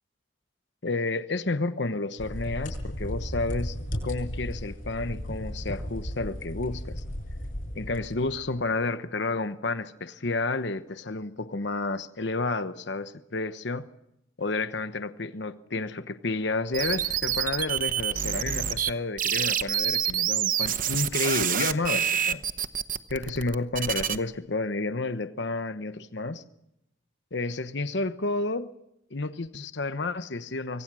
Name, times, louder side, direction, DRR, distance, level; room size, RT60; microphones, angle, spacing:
voice 1, 0.8-3.8 4.0-7.0 7.7-13.9 14.4-22.4 23.1-26.4 27.3-28.7 29.1-30.8, left 3 dB, 60° left, 11 dB, 1.0 m, -31 dB
sound 1, 2.2-8.5, equal, 45° left, 7.6 m, -35 dB
sound 2, 16.7-18.9 19.2-24.2, right 9 dB, 45° right, 0.9 m, -27 dB
25.5 x 23.5 x 6.2 m, 0.83 s
head